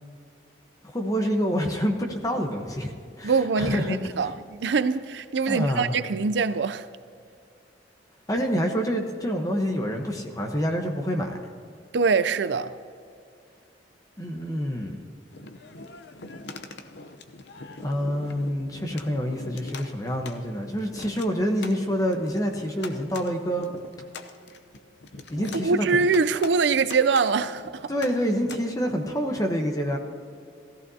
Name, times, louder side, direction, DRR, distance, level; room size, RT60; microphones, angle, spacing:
voice 1, 0.8-4.0 5.5-6.0 8.3-11.3 14.2-15.0 17.8-23.7 25.3-26.0 27.9-30.0, equal, 20° left, 1.0 m, -27 dB
voice 2, 3.2-6.9 11.9-12.7 25.6-27.9, right 4 dB, 75° right, 0.5 m, -23 dB
sound 1, 15.3-28.6, left 3 dB, 70° left, 0.7 m, -43 dB
16.5 x 15.0 x 2.8 m
head